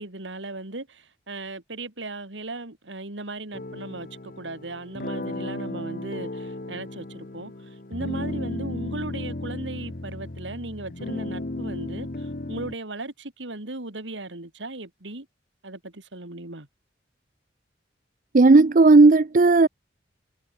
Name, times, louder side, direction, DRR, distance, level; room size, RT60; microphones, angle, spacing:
voice 1, 0.0-7.5 7.9-15.3 15.6-16.7, right 2 dB, 85° right, 3.0 m, -37 dB
sound 1, 3.5-12.8, left 2 dB, 50° left, 1.1 m, -34 dB
voice 2, 18.3-19.7, right 3 dB, 45° right, 0.5 m, -14 dB
head